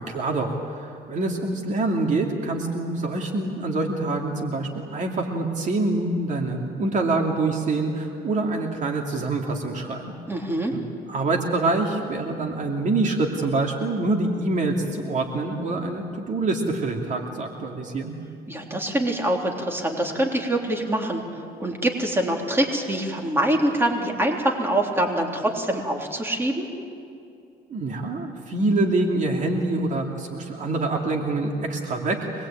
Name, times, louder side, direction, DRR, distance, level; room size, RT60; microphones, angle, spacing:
voice 1, 0.0-10.1 10.7-10.8 11.1-18.1 27.7-32.5, right 2 dB, 45° right, 2 dB, 2.7 m, -25 dB
voice 2, 10.3-10.7 18.5-21.2 21.6-26.7, right 1 dB, 15° right, 1 dB, 3.4 m, -24 dB
25.5 x 20.5 x 8.8 m, 2.6 s
cardioid pair, 110°, 17 cm